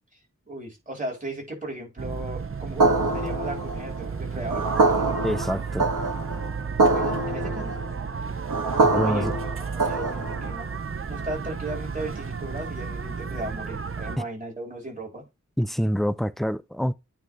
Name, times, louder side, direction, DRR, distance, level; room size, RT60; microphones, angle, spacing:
voice 1, 0.5-4.7 6.9-7.9 8.7-9.3 9.6-10.7 11.1-15.2, right 1 dB, 25° right, 3.9 m, -36 dB
sound 1, 2.0-14.2, right 5 dB, 45° right, 0.6 m, -33 dB
sound 2, 2.8-10.6, right 3 dB, 90° right, 1.3 m, -25 dB
voice 2, 5.2-5.9 8.8-9.3 14.2-14.3 15.6-16.9, equal, ahead, 0.5 m, -26 dB
9.1 x 3.6 x 3.4 m
wide cardioid pair, 65°, 31 cm